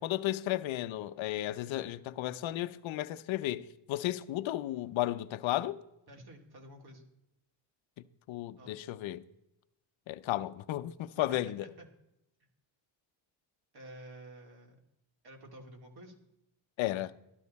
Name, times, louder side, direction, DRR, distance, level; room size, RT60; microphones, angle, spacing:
voice 1, 0.0-5.8 8.3-9.2 10.1-11.7 16.8-17.1, left 14 dB, 75° left, 0.7 m, -34 dB
voice 2, 6.1-7.1 8.6-8.7 11.1-11.9 13.7-14.8 15.2-16.1, right 1 dB, 55° right, 2.5 m, -51 dB
14.0 x 11.5 x 4.2 m
cardioid pair, 115°, 46 cm